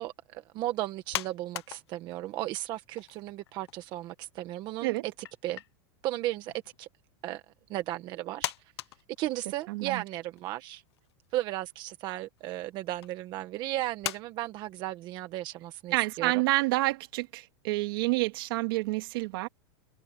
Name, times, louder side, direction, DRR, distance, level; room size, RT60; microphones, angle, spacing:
voice 1, 0.0-5.1 5.4-5.6 6.0-6.5 6.8-6.9 7.2-7.4 7.7-8.5 9.2-10.8 11.3-16.4, right 15 dB, 30° right, 1.3 m, -35 dB
sound 1, 1.1-2.4 2.7-4.0 4.2-4.3 5.2-5.7 6.4-6.9 7.7-7.8 8.4-9.8 10.4-10.5 10.9-11.4 12.2-12.4 13.0-13.1 14.0-14.2, left 15 dB, 70° left, 1.0 m, -38 dB
voice 2, 9.7-10.0 15.9-19.5, right 21 dB, 55° right, 2.2 m, -28 dB
supercardioid pair, 160°, 14 cm